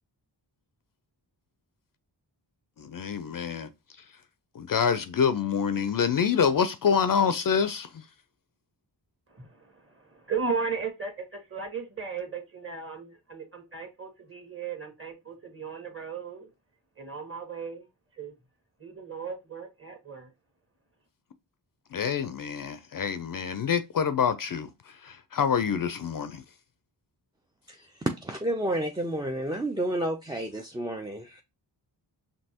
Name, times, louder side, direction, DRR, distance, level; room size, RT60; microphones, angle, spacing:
voice 1, 2.8-3.7 4.5-8.1 21.9-26.4, left 7 dB, 50° left, 0.5 m, -26 dB
voice 2, 9.3-16.5 17.0-17.9 18.1-18.3 18.8-20.3, right 5 dB, 30° right, 1.4 m, -36 dB
voice 3, 27.7-31.4, right 1 dB, 10° right, 0.4 m, -30 dB
5.3 x 2.9 x 2.8 m
cardioid pair, 65°, 44 cm